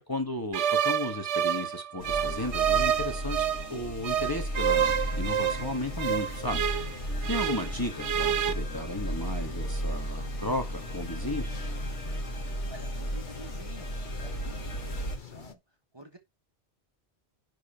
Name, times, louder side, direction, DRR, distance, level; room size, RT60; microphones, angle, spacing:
voice 1, 0.0-3.4 3.7-6.6 7.3-11.6, left 1 dB, 20° left, 1.5 m, -34 dB
sound 1, 0.5-3.7 4.0-7.7 8.0-8.5, right 9 dB, 75° right, 1.1 m, -28 dB
sound 2, 2.0-15.2, right 1 dB, 85° left, 2.4 m, -35 dB
sound 3, 4.6-15.5, left 8 dB, 45° left, 1.0 m, -46 dB
voice 2, 12.6-15.6 15.9-16.2, right 1 dB, 20° right, 1.5 m, -50 dB
10.5 x 3.8 x 5.7 m
omnidirectional pair, 1.2 m